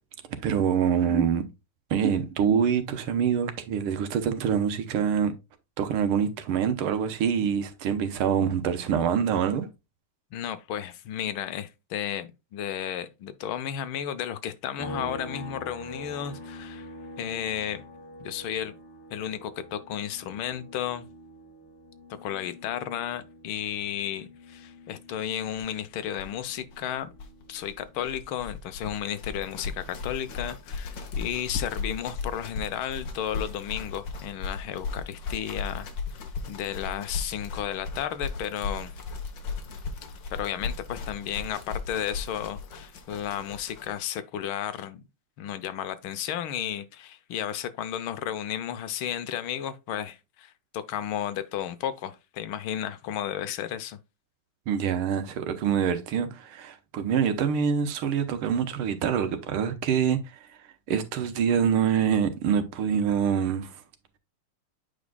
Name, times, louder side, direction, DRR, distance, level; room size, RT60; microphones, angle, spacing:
voice 1, 0.4-1.4 1.9-5.3 5.8-9.7 54.7-60.2 60.9-63.7, right 7 dB, 85° right, 1.8 m, -25 dB
voice 2, 10.3-16.9 17.2-17.8 18.2-18.7 19.1-21.1 22.2-27.1 27.5-35.9 36.5-38.9 40.3-45.0 45.4-54.0, left 10 dB, 80° left, 1.5 m, -33 dB
sound 1, 14.8-28.3 28.7-30.9, left 1 dB, 40° left, 2.3 m, -46 dB
sound 2, 25.6-25.7 25.9-26.0 26.1-44.0, left 4 dB, 60° left, 1.7 m, -37 dB
8.4 x 5.1 x 2.2 m
omnidirectional pair, 2.3 m